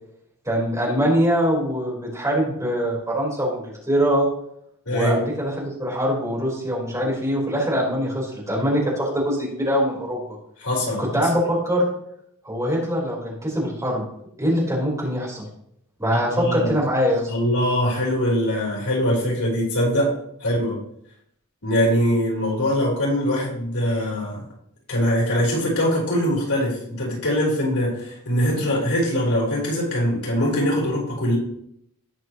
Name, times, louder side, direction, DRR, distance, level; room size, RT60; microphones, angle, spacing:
voice 1, 0.4-4.3 4.9-10.4 11.0-11.8 12.4-14.0 14.4-15.4 16.0-17.3, equal, 15° right, -4 dB, 4.3 m, -23 dB
voice 2, 4.9-5.2 10.6-11.2 16.1-16.7 17.3-20.1 20.4-20.8 21.6-24.5 24.9-31.4, equal, 90° left, -4 dB, 4.3 m, -22 dB
18.0 x 6.5 x 3.1 m, 0.73 s
head